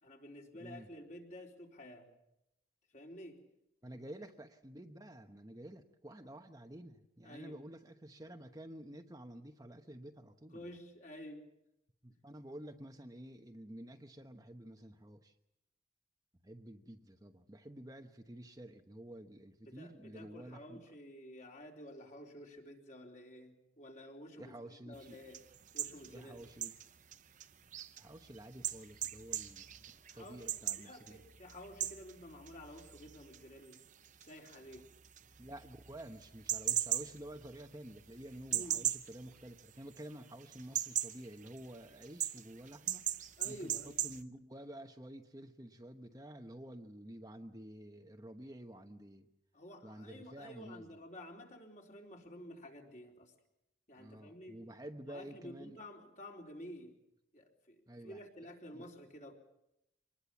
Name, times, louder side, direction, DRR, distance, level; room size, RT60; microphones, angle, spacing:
voice 1, 0.0-2.1 2.9-3.4 3.9-4.0 7.2-7.6 10.5-11.5 12.1-12.2 19.6-25.4 25.7-26.4 30.1-33.8 34.2-34.9 38.5-38.9 43.4-44.0 49.5-53.3 53.9-54.6 55.0-57.0 57.3-59.4, equal, 40° left, 1 dB, 4.2 m, -51 dB
voice 2, 3.8-10.7 12.0-15.3 16.4-20.8 24.4-25.2 26.0-26.7 28.0-31.2 35.4-43.1 43.4-49.3 49.8-51.0 54.0-55.7 57.9-58.2 58.7-58.9, right 1 dB, 20° right, 5 dB, 1.0 m, -50 dB
sound 1, 24.9-40.1 40.4-44.2, right 11 dB, 40° right, 0.8 m, -40 dB
25.5 x 20.0 x 7.2 m, 0.85 s
head